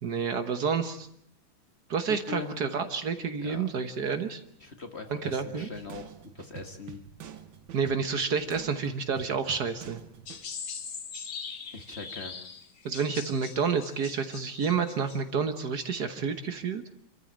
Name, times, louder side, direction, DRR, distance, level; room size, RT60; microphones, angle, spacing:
voice 1, 0.0-1.1 1.9-4.4 5.1-5.7 7.7-10.0 12.8-16.8, right 6 dB, 55° right, 8 dB, 1.7 m, -29 dB
voice 2, 2.1-2.5 3.4-3.7 4.6-7.0 11.7-12.3, left 4 dB, 35° left, 5 dB, 1.9 m, -41 dB
sound 1, 5.2-10.5, right 8 dB, 75° right, 1.9 m, -47 dB
sound 2, 10.3-15.2, left 6 dB, 50° left, 1.7 m, -41 dB
27.0 x 14.0 x 8.8 m, 0.72 s
omnidirectional pair, 2.1 m